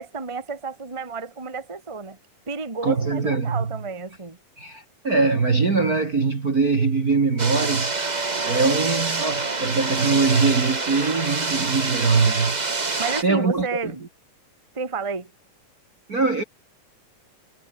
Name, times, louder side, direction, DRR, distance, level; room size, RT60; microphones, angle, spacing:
voice 1, 0.0-2.2 2.5-4.4 13.0-14.0 14.7-15.3, right 4 dB, 10° right, 1.8 m, -31 dB
voice 2, 2.8-3.6 4.6-7.9 8.4-12.6 13.2-13.7 16.1-16.4, right 4 dB, 30° right, 2.0 m, -22 dB
sound 1, 7.4-13.2, right 3 dB, 65° right, 0.4 m, -26 dB
omnidirectional pair, 3.9 m